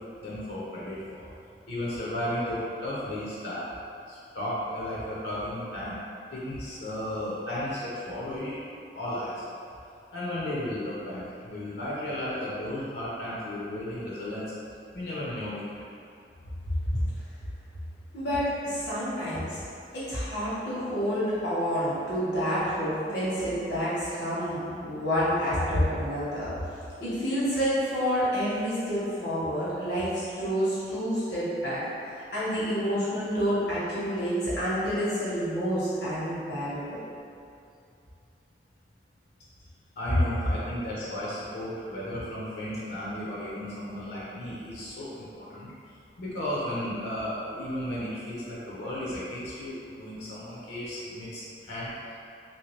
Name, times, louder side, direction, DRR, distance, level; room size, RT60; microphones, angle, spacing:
voice 1, 0.2-1.2 1.7-3.6 4.1-6.0 6.3-8.5 8.9-9.4 10.1-14.5 14.9-15.6 40.0-45.7 46.2-51.9, left 1 dB, 65° left, -7 dB, 0.6 m, -34 dB
voice 2, 18.1-19.6 19.9-26.5 27.0-31.8 32.3-37.0 40.1-40.2, equal, 85° left, -11 dB, 1.3 m, -28 dB
3.1 x 2.7 x 3.1 m, 2.5 s
head